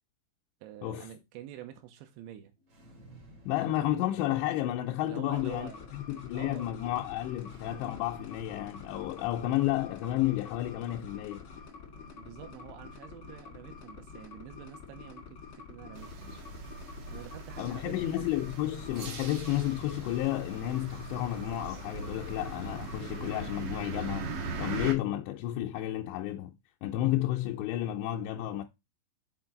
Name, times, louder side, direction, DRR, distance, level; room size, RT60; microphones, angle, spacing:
voice 1, 0.6-2.5 3.6-3.7 5.0-6.7 12.1-16.6 17.1-18.1, right 11 dB, 80° right, 3.1 m, -47 dB
sound 1, 2.6-17.8, right 1 dB, 40° right, 1.8 m, -57 dB
voice 2, 3.5-11.5 17.6-24.3 24.6-26.5 26.8-28.6, left 14 dB, 80° left, 2.6 m, -31 dB
sound 2, 5.3-23.4, left 5 dB, 50° left, 1.5 m, -48 dB
sound 3, 15.9-24.9, right 3 dB, 55° right, 2.6 m, -40 dB
7.0 x 4.4 x 3.8 m
omnidirectional pair, 5.3 m